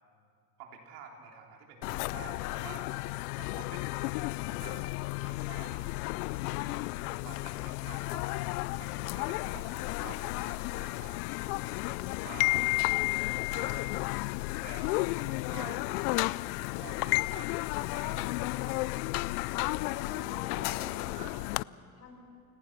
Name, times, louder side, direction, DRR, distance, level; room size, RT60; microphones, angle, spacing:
voice 1, 0.6-2.9 3.4-4.9 5.2-5.8 6.2-6.9 7.2-8.4 8.8-11.2 11.9-12.7 13.5-14.1 14.6-15.8 16.2-17.5 17.9-19.0 21.1-21.7, right 6 dB, 70° right, 1 dB, 3.8 m, -50 dB
sound 1, 1.8-21.6, left 22 dB, 75° left, 0.5 m, -33 dB
voice 2, 19.9-22.2, left 3 dB, 35° left, 2 dB, 6.2 m, -47 dB
29.0 x 18.5 x 6.1 m, 2.4 s
supercardioid pair, 100°, 46 cm